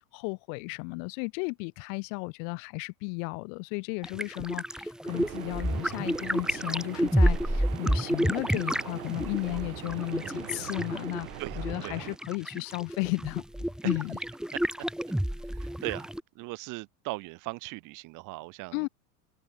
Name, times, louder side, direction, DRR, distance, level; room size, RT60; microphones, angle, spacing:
voice 1, 0.0-14.2 18.7-18.9, left 40 dB or more, 55° left, 6.1 m, -34 dB
sound 1, 4.0-16.2, equal, ahead, 3.0 m, -30 dB
sound 2, 5.1-12.2, right 16 dB, 70° right, 3.8 m, -43 dB
voice 2, 11.4-12.0 15.6-16.1 16.4-18.8, right 22 dB, 45° right, 1.2 m, -38 dB
hypercardioid pair, 105°, 44 cm